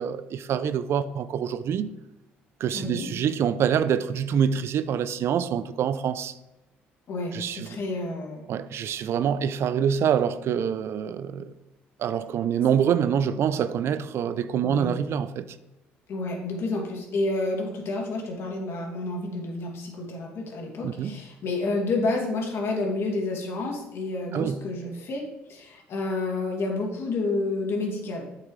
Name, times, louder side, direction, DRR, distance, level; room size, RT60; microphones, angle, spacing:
voice 1, 0.0-1.9 2.6-6.3 7.3-7.7 8.5-11.5 12.0-15.5 20.8-21.2 24.3-24.6, right 8 dB, 60° right, 0.5 m, -26 dB
voice 2, 2.7-3.1 7.1-8.4 14.6-14.9 16.1-28.3, left 2 dB, 60° left, 2.4 m, -30 dB
8.8 x 6.8 x 3.2 m
supercardioid pair, 65°, 5 cm